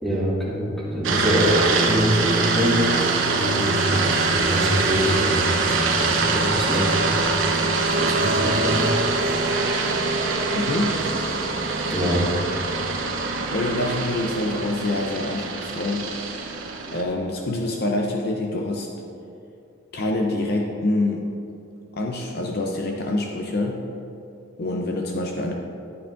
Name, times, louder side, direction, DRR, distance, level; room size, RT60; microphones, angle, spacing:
voice 1, 0.0-7.5 8.0-8.9 11.9-12.3, equal, ahead, -7 dB, 2.1 m, -25 dB
sound 1, 1.0-17.0, right 3 dB, 90° right, 0.9 m, -23 dB
voice 2, 10.6-11.1 13.5-16.1 16.9-18.9 19.9-21.3 21.9-23.8 24.6-25.5, left 2 dB, 55° left, 1 dB, 0.7 m, -26 dB
10.5 x 9.9 x 2.6 m, 2.6 s
head